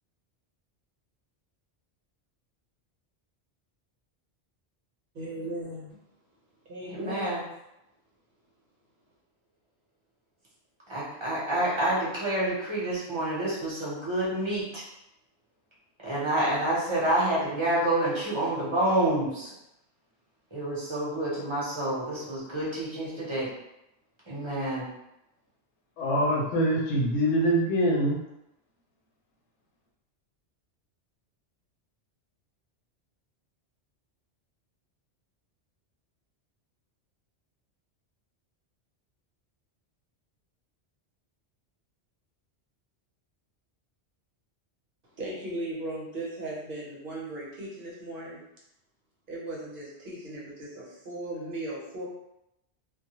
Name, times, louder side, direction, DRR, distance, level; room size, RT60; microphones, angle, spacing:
voice 1, 5.1-6.0 6.7-7.4 45.1-48.4 49.3-52.1, right 1 dB, 55° right, -4 dB, 0.9 m, -37 dB
voice 2, 6.9-7.4 10.9-14.8 16.0-19.5 20.5-23.5 24.3-24.9, right 1 dB, 30° right, -7 dB, 0.8 m, -28 dB
voice 3, 26.0-28.2, equal, 90° left, -3 dB, 0.9 m, -24 dB
2.2 x 2.1 x 2.9 m, 0.86 s
omnidirectional pair, 1.1 m